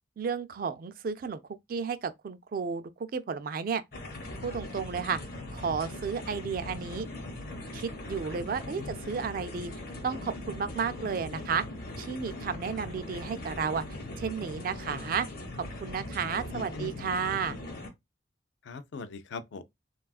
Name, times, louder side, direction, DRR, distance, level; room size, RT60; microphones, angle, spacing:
voice 1, 0.2-1.4 1.7-3.8 4.4-5.2 5.5-7.1 7.7-9.7 10.0-11.6 12.0-13.8 14.2-15.3 15.6-17.6, right 6 dB, 45° right, 0.3 m, -32 dB
sound 1, 3.9-17.9, left 1 dB, 50° left, 0.8 m, -40 dB
voice 2, 8.5-8.9 12.8-12.9 16.3-17.1 18.6-19.6, left 4 dB, 70° left, 0.4 m, -42 dB
3.4 x 2.3 x 2.3 m
head